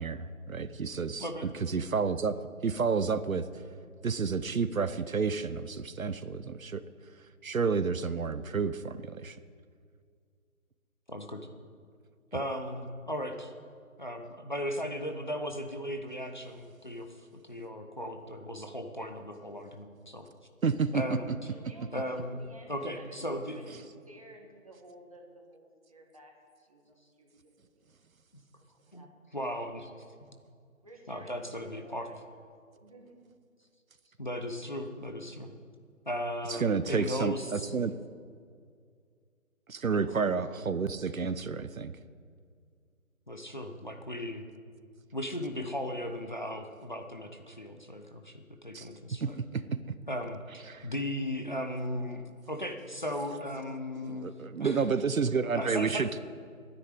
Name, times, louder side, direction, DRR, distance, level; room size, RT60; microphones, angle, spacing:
voice 1, 0.0-1.2 1.6-3.5 4.0-6.8 7.4-9.4 20.6-21.0 36.5-37.9 39.7-41.9 48.7-48.9 49.2-49.8 50.7-50.9 54.1-56.2, right 5 dB, 70° right, 13 dB, 0.8 m, -30 dB
voice 2, 11.1-11.5 12.3-13.5 14.0-20.3 20.9-21.3 21.9-22.4 22.7-23.6 28.9-29.9 31.1-32.1 34.2-35.5 36.1-37.8 39.9-40.2 43.3-44.5 45.1-49.4 50.1-54.3 54.6-54.9 55.5-56.1, equal, 35° left, 5 dB, 0.9 m, -37 dB
voice 3, 21.5-26.3 26.7-27.9 28.8-29.4 30.8-33.2, right 1 dB, 25° right, 0 dB, 1.8 m, -54 dB
11.5 x 10.0 x 9.1 m, 2.2 s
figure-of-eight pair, 175°, 42 cm